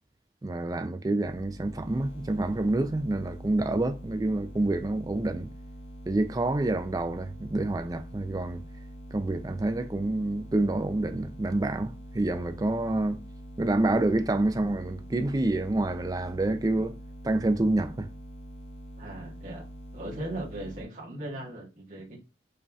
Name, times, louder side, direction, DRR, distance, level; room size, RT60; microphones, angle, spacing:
voice 1, 0.4-5.5 6.1-8.6 9.1-13.2 13.6-17.0 17.2-18.1, right 2 dB, 20° right, 0.3 m, -27 dB
sound 1, 1.2-20.8, equal, 35° left, 0.8 m, -44 dB
voice 2, 19.0-19.7 19.9-22.2, right 1 dB, 45° right, 1.3 m, -38 dB
5.1 x 2.8 x 2.3 m
head